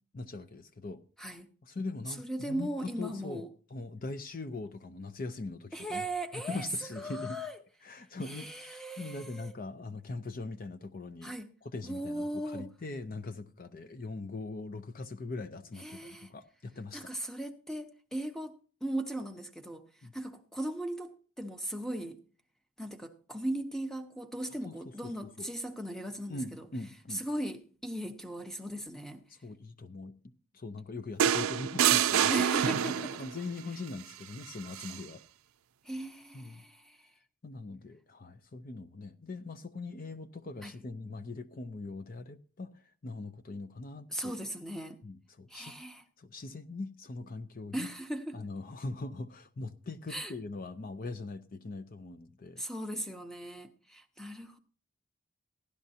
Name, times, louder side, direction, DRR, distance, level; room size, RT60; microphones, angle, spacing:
voice 1, 0.1-1.0 1.6-6.0 6.3-7.4 7.8-11.4 11.6-17.1 20.0-20.1 24.6-24.7 25.0-25.1 25.4-25.5 26.3-27.2 29.3-30.2 30.5-32.3 33.2-35.2 36.3-36.6 37.4-44.3 45.0-45.8 46.2-47.9 48.3-52.6, left 3 dB, 40° left, 0.5 m, -41 dB
voice 2, 1.2-1.5 2.2-3.5 5.7-6.7 7.0-7.6 8.2-9.5 11.2-11.5 11.8-12.7 15.8-16.3 16.9-18.5 18.8-22.2 22.8-26.7 27.1-29.2 32.3-33.2 35.8-37.1 40.6-40.8 44.1-45.0 45.5-46.0 47.7-48.4 50.1-50.3 52.6-54.6, right 1 dB, ahead, 0.8 m, -38 dB
sound 1, 31.2-33.3 34.7-35.0, right 9 dB, 75° right, 0.5 m, -26 dB
16.5 x 11.5 x 2.8 m
head